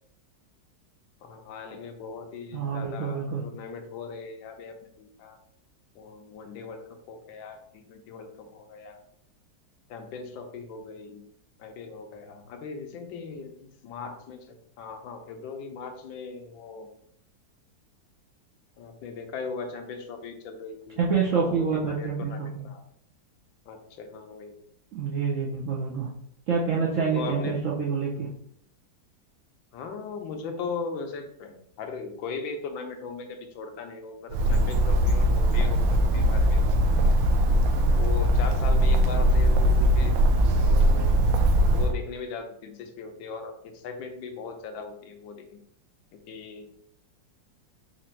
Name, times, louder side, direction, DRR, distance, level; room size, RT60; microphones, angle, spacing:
voice 1, 1.2-5.4 5.9-9.0 9.9-11.2 11.6-16.9 18.8-22.8 23.7-24.5 27.1-27.6 29.7-36.6 37.0-37.2 38.0-40.1 40.6-41.2 41.6-45.6 46.3-46.7, left 4 dB, 85° left, 5 dB, 1.4 m, -39 dB
voice 2, 2.5-3.4 21.0-22.7 24.9-26.1 26.5-28.3, right 5 dB, 65° right, -4 dB, 0.7 m, -27 dB
Bird, 34.3-41.9, equal, 80° right, 1.3 m, -21 dB
4.3 x 2.5 x 4.3 m, 0.69 s
omnidirectional pair, 2.1 m